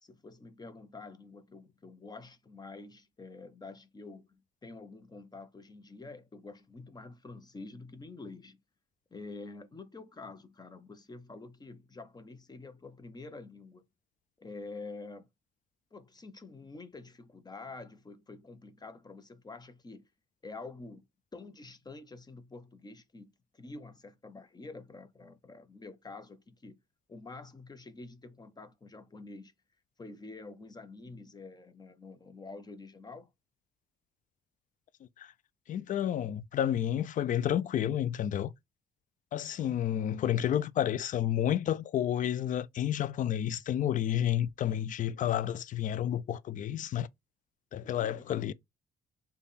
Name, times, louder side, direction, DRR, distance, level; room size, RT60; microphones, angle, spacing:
voice 1, 0.0-8.6 9.1-13.8 14.4-15.3 15.9-20.1 20.4-21.0 21.3-26.8 27.1-29.5 30.0-33.3 47.8-48.4, left 3 dB, 25° left, 0.7 m, -47 dB
voice 2, 35.7-38.5 39.3-47.1 47.7-48.5, left 10 dB, 50° left, 0.4 m, -30 dB
3.4 x 2.3 x 4.0 m
supercardioid pair, 60°, 16 cm